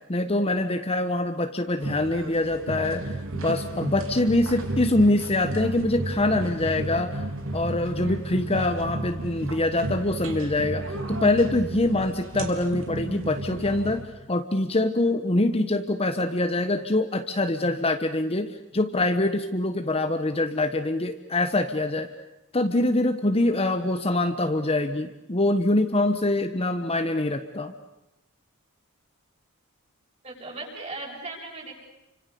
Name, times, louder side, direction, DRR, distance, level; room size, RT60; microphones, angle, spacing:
voice 1, 0.1-7.2 7.5-22.1 22.5-27.7, left 2 dB, 25° left, 7 dB, 1.2 m, -24 dB
sound 1, 1.8-14.0, right 1 dB, 65° right, 3.8 m, -33 dB
voice 2, 30.2-31.7, right 2 dB, 30° right, -1 dB, 7.9 m, -37 dB
29.5 x 25.5 x 7.0 m, 0.95 s
head